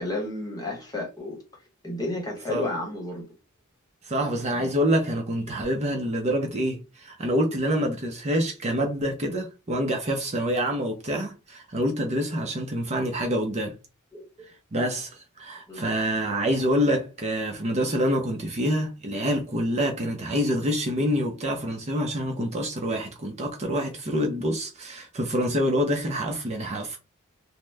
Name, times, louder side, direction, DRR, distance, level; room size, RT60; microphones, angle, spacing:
voice 1, 0.0-1.4 1.8-3.3 4.3-4.7 14.1-14.2 15.7-15.8, left 1 dB, 15° left, 1.1 m, -32 dB
voice 2, 4.1-13.8 14.7-27.0, equal, 30° right, 0.5 m, -26 dB
2.8 x 2.1 x 3.3 m
head